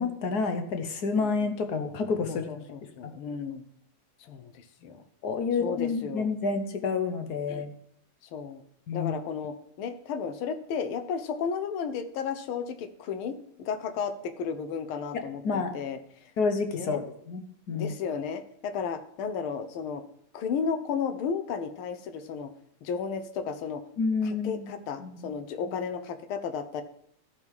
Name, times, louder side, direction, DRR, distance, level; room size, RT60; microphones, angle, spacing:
voice 1, 0.0-2.5 5.2-7.7 8.9-9.1 15.1-15.7 16.4-17.4 17.7-17.9 24.0-24.7 25.0-25.3, left 4 dB, 60° left, 7 dB, 1.2 m, -29 dB
voice 2, 2.3-3.6 4.2-5.0 5.6-6.3 7.5-7.6 8.3-8.6 8.9-16.0 16.7-17.0 17.7-20.0 20.3-22.5 22.8-23.8 24.2-26.8, left 6 dB, 75° left, 10 dB, 1.7 m, -33 dB
13.0 x 5.4 x 4.7 m, 0.68 s
omnidirectional pair, 2.4 m